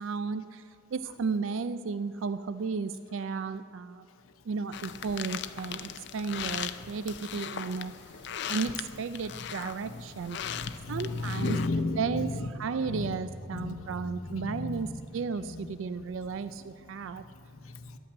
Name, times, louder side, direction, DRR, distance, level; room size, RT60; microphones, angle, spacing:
voice 1, 0.0-4.1 4.4-7.9 8.5-10.4 10.9-11.6 11.9-17.2, right 5 dB, 70° right, 12 dB, 0.4 m, -34 dB
sound 1, 4.7-11.7, left 8 dB, 55° left, 0.5 m, -39 dB
voice 2, 10.4-12.5 12.8-13.2 13.5-15.0 15.4-15.7 16.5-16.6 17.0-18.0, left 3 dB, 85° left, 8 dB, 0.8 m, -35 dB
11.5 x 8.6 x 9.1 m, 2.5 s
head